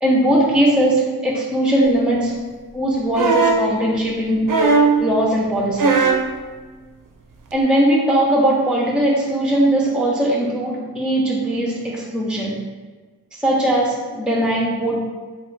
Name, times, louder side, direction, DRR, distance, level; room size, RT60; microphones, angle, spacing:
voice 1, 0.0-2.4 2.7-4.5 5.0-6.1 7.5-12.7 13.3-15.0, right 1 dB, ahead, -3 dB, 0.6 m, -19 dB
sound 1, 3.1-3.7 4.5-5.0 5.8-6.3 7.5-7.6, right 4 dB, 60° right, 0.5 m, -16 dB
3.2 x 2.4 x 3.1 m, 1.4 s
wide cardioid pair, 40°, 37 cm